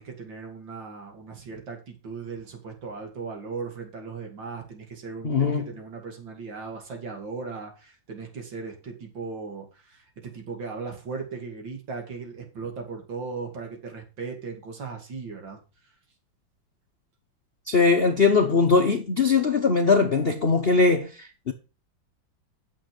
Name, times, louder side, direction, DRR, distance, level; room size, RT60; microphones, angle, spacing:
voice 1, 0.0-15.6, right 4 dB, 70° right, 3.1 m, -37 dB
voice 2, 5.2-5.7 17.7-21.5, left 4 dB, 50° left, 0.7 m, -21 dB
9.0 x 7.2 x 5.3 m
omnidirectional pair, 2.1 m